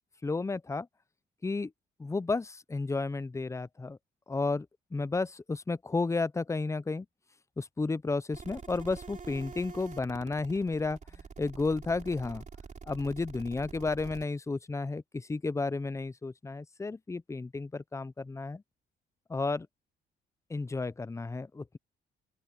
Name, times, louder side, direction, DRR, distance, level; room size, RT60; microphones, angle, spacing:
voice 1, 0.2-0.9 1.4-1.7 2.0-4.0 4.3-4.7 4.9-7.1 7.6-11.0 11.4-12.4 12.9-18.6 19.3-19.7 20.5-21.8, left 3 dB, 15° left, 0.5 m, -32 dB
sound 1, 8.3-14.2, right 5 dB, 40° right, 3.8 m, -46 dB
open air
cardioid pair, 90°, 20 cm